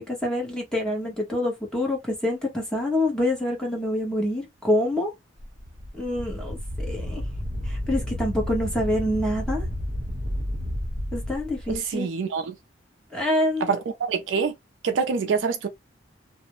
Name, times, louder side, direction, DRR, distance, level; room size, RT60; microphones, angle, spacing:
voice 1, 0.0-5.1 5.9-7.2 7.7-9.7 11.1-12.1 13.1-13.7, left 1 dB, 5° left, 0.9 m, -26 dB
Wind, 5.4-11.8, left 1 dB, 35° right, 0.8 m, -31 dB
voice 2, 11.7-12.5 13.6-13.8 14.1-14.5 14.8-15.7, right 5 dB, 75° right, 0.4 m, -25 dB
2.4 x 2.0 x 2.9 m
head